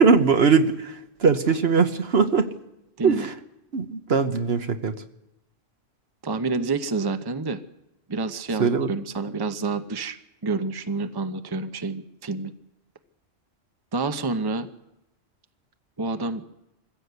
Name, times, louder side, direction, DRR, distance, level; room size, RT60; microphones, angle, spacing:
voice 1, 0.0-2.5 3.0-3.3 3.7-4.9 8.6-8.9, right 5 dB, 55° right, 8 dB, 1.3 m, -20 dB
voice 2, 6.2-7.6 8.1-10.2 10.4-12.5 13.9-14.7 16.0-16.4, right 3 dB, 20° right, 9 dB, 0.8 m, -28 dB
24.0 x 15.5 x 8.1 m, 0.92 s
omnidirectional pair, 1.3 m